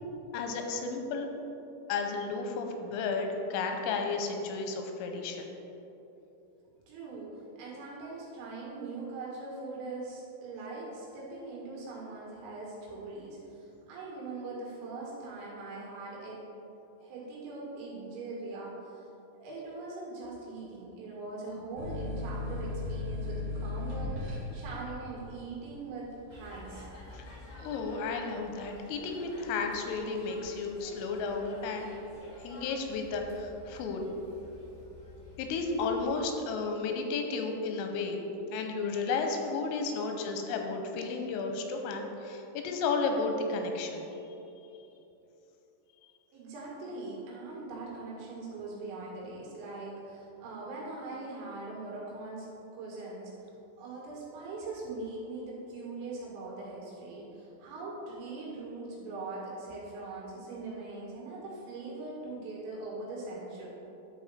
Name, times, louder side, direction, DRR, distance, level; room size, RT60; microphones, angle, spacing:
voice 1, 0.3-1.3 1.9-5.5 27.1-27.3 27.6-31.9 32.4-34.0 35.4-38.2 38.5-44.1, left 4 dB, 90° left, 4 dB, 3.3 m, -33 dB
voice 2, 6.9-16.4 17.0-19.0 19.3-26.8 46.3-52.5 52.7-53.3 53.8-63.7, right 3 dB, 75° right, -5 dB, 4.5 m, -41 dB
sound 1, 21.8-29.0 29.5-30.2, left 3 dB, 60° right, 2.3 m, -38 dB
sound 2, 26.3-36.2, left 1 dB, 65° left, 1.1 m, -51 dB
12.5 x 4.8 x 4.2 m, 3.0 s
omnidirectional pair, 5.9 m